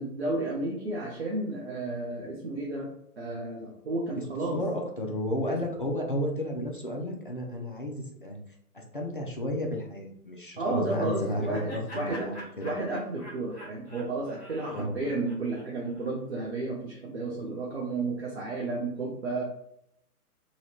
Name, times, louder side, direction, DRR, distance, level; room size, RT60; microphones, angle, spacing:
voice 1, 0.0-2.9 3.2-4.6 10.6-12.3 12.6-19.4, right 2 dB, 45° right, -2 dB, 0.7 m, -32 dB
voice 2, 4.5-8.4 8.7-12.7 14.7-14.9, left 1 dB, 40° left, 0 dB, 0.4 m, -32 dB
Laughter, 10.9-16.1, right 1 dB, 15° left, 0.9 m, -46 dB
2.9 x 2.7 x 2.8 m, 0.74 s
figure-of-eight pair, 135°, 46 cm